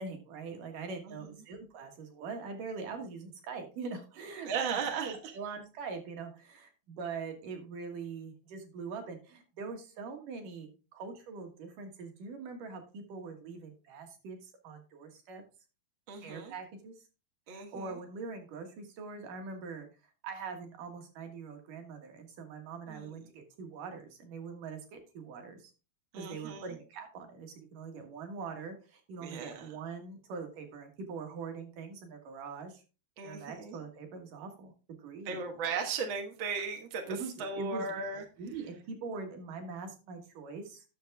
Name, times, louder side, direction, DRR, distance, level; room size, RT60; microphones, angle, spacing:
voice 1, 0.0-15.4 16.2-16.9 17.5-19.9 20.2-25.7 26.2-32.8 33.2-34.7 35.0-35.4 37.1-37.9 38.4-40.8, right 4 dB, 60° right, 4 dB, 2.7 m, -43 dB
voice 2, 4.4-5.3 16.1-16.5 17.5-18.0 22.9-23.1 26.1-26.7 29.2-29.7 33.2-33.8 35.2-38.2, right 5 dB, 85° right, 3 dB, 1.1 m, -37 dB
10.5 x 6.5 x 3.4 m, 0.32 s
omnidirectional pair, 4.6 m